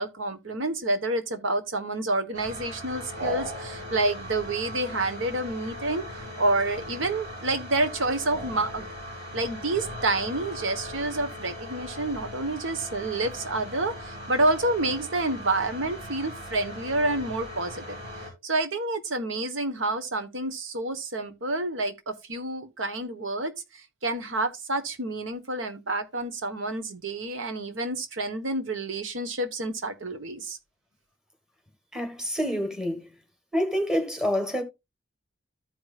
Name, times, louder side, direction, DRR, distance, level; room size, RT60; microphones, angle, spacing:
voice 1, 0.0-8.9 9.3-18.0 18.4-23.5 24.0-30.6, right 2 dB, 85° right, 1.2 m, -28 dB
sound 1, 2.3-18.3, equal, 60° right, 5.4 m, -39 dB
voice 2, 31.9-33.1 33.5-34.6, equal, 5° right, 1.4 m, -27 dB
14.0 x 4.9 x 2.4 m
head